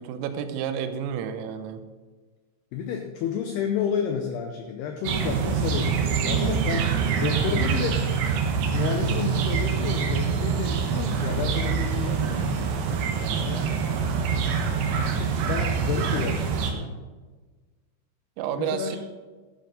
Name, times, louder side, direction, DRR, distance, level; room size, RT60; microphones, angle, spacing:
voice 1, 0.0-1.8 13.2-13.5 18.4-19.0, right 8 dB, 90° right, 9 dB, 3.5 m, -31 dB
voice 2, 2.7-6.9 7.2-8.0 8.3-8.4 8.7-12.8 13.4-13.8 15.0-17.0 18.6-19.0, left 7 dB, 90° left, 4 dB, 2.3 m, -31 dB
sound 1, 5.0-16.7, right 6 dB, 70° right, 2.7 m, -25 dB
12.5 x 10.5 x 3.9 m, 1.3 s
omnidirectional pair, 5.8 m